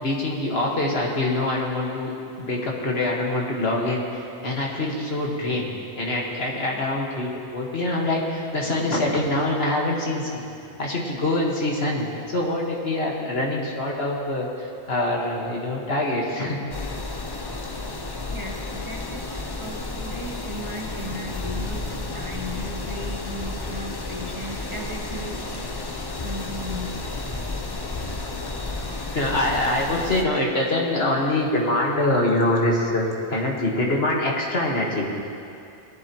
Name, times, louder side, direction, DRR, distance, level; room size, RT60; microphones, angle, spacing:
voice 1, 0.0-5.7 6.0-10.5 10.8-16.6 28.7-35.1, left 1 dB, 60° left, -2 dB, 1.8 m, -25 dB
sound 1, 16.7-30.3, left 2 dB, 30° left, 0.5 m, -32 dB
voice 2, 18.3-25.6 26.2-27.0, equal, 30° right, -1 dB, 1.0 m, -36 dB
19.0 x 11.0 x 3.0 m, 2.6 s
omnidirectional pair, 1.2 m